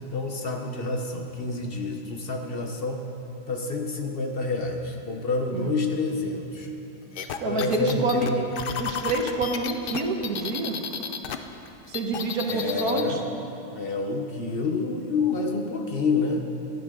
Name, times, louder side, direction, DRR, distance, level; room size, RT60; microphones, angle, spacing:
voice 1, 0.1-3.0 3.5-6.7 7.4-8.5 12.5-13.2 13.7-16.4, left 3 dB, 45° left, 3 dB, 0.9 m, -28 dB
sound 1, 7.2-11.4 11.7-13.1, left 7 dB, 65° left, 0.5 m, -32 dB
voice 2, 7.4-8.3 8.8-10.8 11.9-13.2, right 3 dB, 90° right, 2 dB, 1.6 m, -27 dB
16.0 x 12.0 x 3.7 m, 2.9 s
omnidirectional pair, 1.5 m